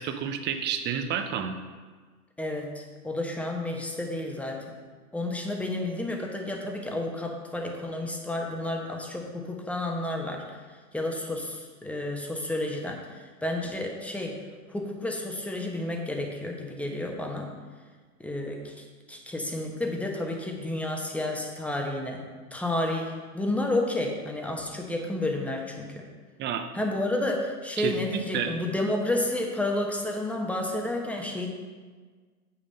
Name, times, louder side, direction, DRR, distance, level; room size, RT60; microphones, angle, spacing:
voice 1, 0.0-1.6 26.4-26.6 27.8-28.6, right 8 dB, 25° right, 7 dB, 0.7 m, -30 dB
voice 2, 2.4-4.8 5.1-10.4 10.9-14.3 14.7-17.5 18.2-22.2 22.5-25.9 26.7-31.5, left 1 dB, 5° left, 1 dB, 1.1 m, -31 dB
8.4 x 5.7 x 5.4 m, 1.5 s
figure-of-eight pair, 100°, 46 cm